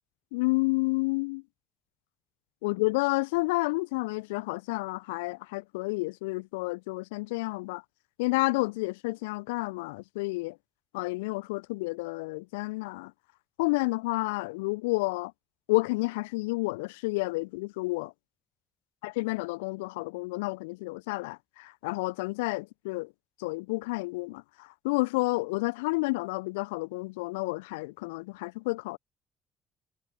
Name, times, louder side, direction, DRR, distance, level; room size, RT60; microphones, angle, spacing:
voice 1, 0.3-1.4 2.6-7.8 8.2-10.6 10.9-13.1 13.6-15.3 15.7-18.1 19.0-23.1 23.4-29.0, left 24 dB, 70° left, 0.6 m, -30 dB
figure-of-eight pair, 45°, 0 cm